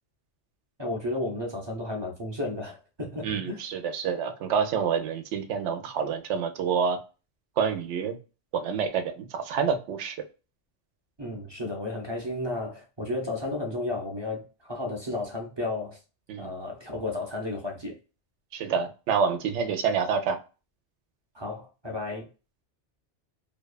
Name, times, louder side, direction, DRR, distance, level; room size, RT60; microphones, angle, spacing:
voice 1, 0.8-3.6 11.2-16.0 16.4-18.0 21.3-22.3, left 2 dB, 30° right, 0.6 m, -33 dB
voice 2, 3.2-7.0 7.6-8.2 8.5-10.2 16.3-16.5 18.5-20.4, right 6 dB, 90° right, 0.9 m, -27 dB
2.7 x 2.2 x 2.2 m
omnidirectional pair, 1.2 m